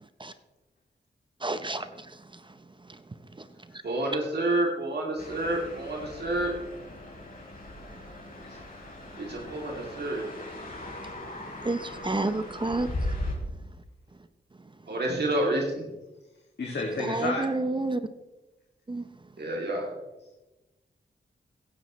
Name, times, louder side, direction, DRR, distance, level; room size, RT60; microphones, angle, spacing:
voice 1, 1.4-2.1 11.6-12.9 17.0-18.0 18.9-19.0, right 2 dB, 25° right, 11 dB, 0.8 m, -29 dB
voice 2, 3.8-6.5 9.2-10.3 14.9-15.9 19.4-19.9, right 1 dB, 60° right, -1 dB, 2.7 m, -29 dB
sound 1, 5.2-13.3, left 1 dB, 50° left, 3.8 m, -38 dB
voice 3, 16.6-17.5, left 2 dB, 65° left, -1 dB, 2.1 m, -31 dB
16.0 x 10.0 x 3.2 m, 1.0 s
cardioid pair, 65°, 19 cm